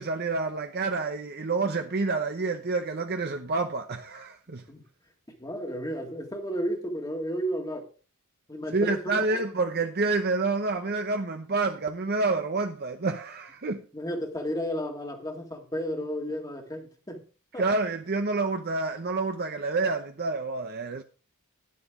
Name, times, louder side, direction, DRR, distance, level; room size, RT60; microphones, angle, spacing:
voice 1, 0.0-4.6 8.7-13.8 17.6-21.0, right 3 dB, 45° right, 0.8 m, -28 dB
voice 2, 5.4-7.9 8.5-9.4 13.9-17.2 17.5-17.7, equal, 15° left, 1.8 m, -33 dB
11.5 x 10.5 x 3.7 m
head